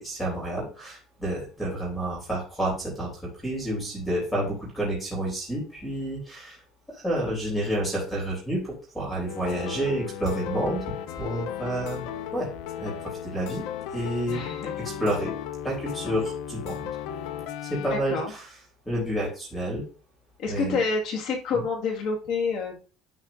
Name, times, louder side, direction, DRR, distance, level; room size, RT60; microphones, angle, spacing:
voice 1, 0.0-3.1 3.4-6.6 7.0-10.8 11.2-12.5 12.8-12.9 13.2-13.7 13.9-14.4 15.0-15.3 15.6-16.9 17.7-18.2 18.9-19.8 20.5-20.8, right 1 dB, 5° left, -2 dB, 3.5 m, -29 dB
sound 1, 9.3-18.0, left 9 dB, 70° left, 0.7 m, -35 dB
voice 2, 14.3-14.7 17.7-18.3 20.4-22.8, left 4 dB, 55° left, 2 dB, 1.9 m, -28 dB
11.0 x 4.7 x 2.6 m, 0.37 s
cardioid pair, 155°, 0 cm